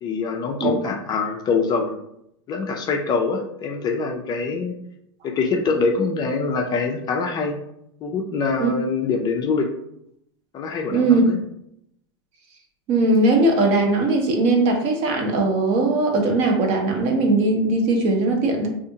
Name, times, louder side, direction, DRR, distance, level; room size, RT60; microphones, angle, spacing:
voice 1, 0.0-2.0 2.5-4.8 5.2-7.6 8.0-9.7 10.5-11.4, left 4 dB, 30° left, 2 dB, 0.4 m, -24 dB
voice 2, 10.9-11.2 12.9-18.7, right 2 dB, 45° right, 2 dB, 0.7 m, -19 dB
2.6 x 2.4 x 2.7 m, 0.76 s
hypercardioid pair, 110°, 15 cm